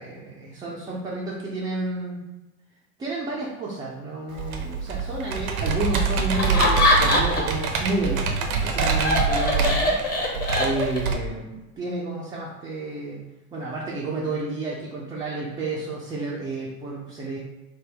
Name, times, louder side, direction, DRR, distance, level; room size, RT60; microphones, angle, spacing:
voice 1, 0.0-2.2 3.0-9.9 10.3-13.3 13.5-17.4, right 2 dB, 10° right, -5 dB, 0.3 m, -31 dB
Computer keyboard, 4.4-11.1, right 5 dB, 70° right, 0.6 m, -25 dB
Laughter, 6.3-7.6 8.0-11.2, left 1 dB, 20° left, 0.8 m, -22 dB
3.4 x 2.1 x 3.4 m, 1.0 s
hypercardioid pair, 80°, 43 cm